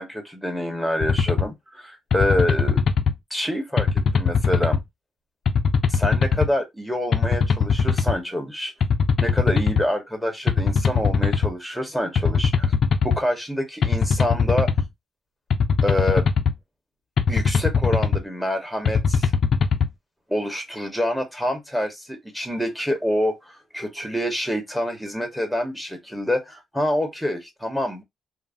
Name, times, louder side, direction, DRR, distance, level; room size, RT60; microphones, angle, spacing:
voice 1, 0.0-2.8 3.3-4.8 5.9-8.7 9.2-12.7 13.0-14.7 15.8-16.3 17.3-19.3 20.3-28.0, left 1 dB, ahead, 1.1 m, -26 dB
sound 1, 1.0-1.5 2.1-3.1 3.8-4.8 5.5-6.5 7.1-8.2 8.8-9.8 10.5-11.5 12.2-13.2 13.8-14.9 15.5-16.5 17.2-18.2 18.8-19.9, left 5 dB, 60° left, 0.4 m, -20 dB
3.1 x 2.1 x 2.5 m
cardioid pair, 90°, 0 cm